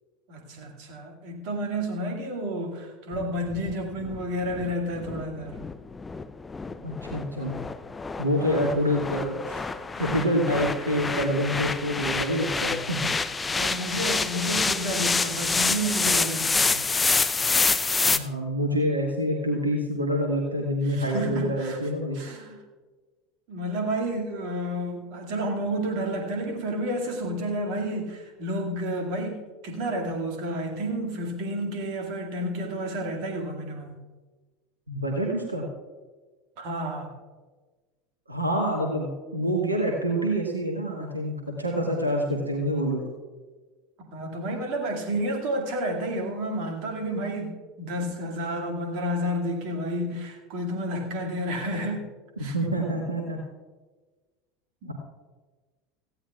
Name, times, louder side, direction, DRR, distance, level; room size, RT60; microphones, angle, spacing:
voice 1, 0.3-5.7 8.4-8.8 9.5-9.6 9.9-10.1 10.5-10.7 13.4-16.9 20.8-21.8 22.1-22.6 23.5-34.0 36.6-37.1 44.0-52.1 52.4-52.6 54.8-54.9, right 1 dB, 55° right, 3 dB, 2.1 m, -31 dB
sound 1, 3.1-18.2, left 4 dB, 15° left, 0.6 m, -27 dB
voice 2, 6.8-7.5 8.2-9.4 10.0-13.1 18.1-22.2 34.9-35.7 38.3-43.0 52.5-53.4, equal, 85° right, 1 dB, 1.3 m, -26 dB
17.5 x 15.0 x 2.4 m, 1.3 s
figure-of-eight pair, 75°, 0 cm